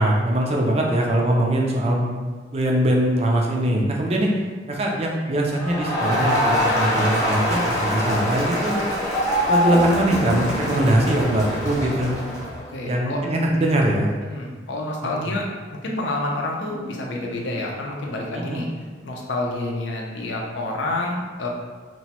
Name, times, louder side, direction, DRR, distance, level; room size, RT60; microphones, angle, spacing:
voice 1, 0.0-4.3 4.7-8.8 9.5-12.1 12.8-14.1 15.2-15.3 18.3-18.6, right 1 dB, 35° right, -1 dB, 0.4 m, -22 dB
Crowd, 5.6-12.6, equal, 20° left, 0.9 m, -24 dB
voice 2, 12.7-13.2 14.3-15.5 15.7-18.7 19.0-21.5, left 2 dB, 70° left, -1 dB, 0.5 m, -28 dB
2.9 x 2.2 x 2.8 m, 1.4 s
head